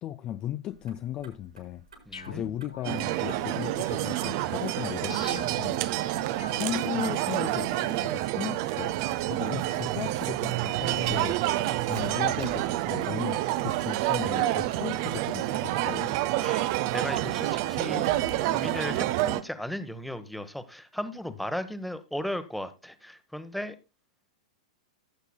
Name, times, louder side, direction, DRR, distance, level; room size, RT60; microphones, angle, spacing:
voice 1, 0.0-1.8 2.3-5.8 6.5-9.0 9.3-11.6 11.9-16.2, left 11 dB, 25° left, 0.5 m, -36 dB
Motor vehicle (road), 0.7-18.5, right 3 dB, 75° right, 4.3 m, -49 dB
sound 1, 2.1-7.9, left 4 dB, 75° left, 1.1 m, -45 dB
voice 2, 2.1-2.4 6.0-6.3 9.3-9.4 16.4-18.1 18.4-23.8, left 1 dB, ahead, 1.0 m, -36 dB
sound 2, 2.8-19.4, right 15 dB, 40° right, 0.6 m, -28 dB
18.0 x 8.1 x 2.2 m
figure-of-eight pair, 100°, 3 cm